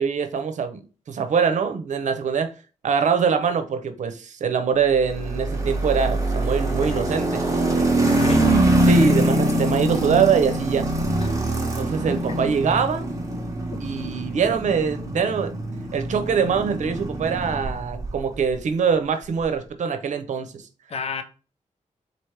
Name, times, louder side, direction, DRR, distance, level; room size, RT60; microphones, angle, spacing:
voice 1, 0.0-2.5 2.8-7.5 8.9-10.9 11.8-13.1 13.8-15.5 15.9-20.6, right 6 dB, 70° right, 0.7 m, -23 dB
sound 1, 5.0-18.2, right 1 dB, 25° right, 1.3 m, -23 dB
voice 2, 6.8-7.1 8.0-8.6 11.2-11.4 20.9-21.2, left 5 dB, 55° left, 0.8 m, -32 dB
4.1 x 3.0 x 3.2 m
cardioid pair, 95°, 13 cm